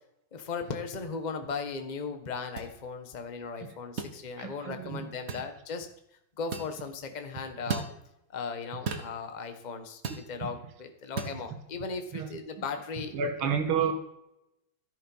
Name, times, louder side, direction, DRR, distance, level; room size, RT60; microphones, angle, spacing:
voice 1, 0.3-5.9 6.4-7.9 8.3-13.1 13.4-13.5, left 5 dB, 30° left, 6 dB, 0.9 m, -37 dB
sound 1, 2.6-2.7 4.0-4.2 5.3-5.5 6.5-6.7 7.7-7.9 8.9-9.1 10.0-10.3 11.2-11.4, right 5 dB, 45° right, 1.5 m, -34 dB
voice 2, 4.4-5.0 12.1-12.3 13.1-13.9, right 6 dB, 80° right, 6 dB, 2.0 m, -30 dB
13.5 x 7.8 x 5.5 m, 0.83 s
omnidirectional pair, 2.3 m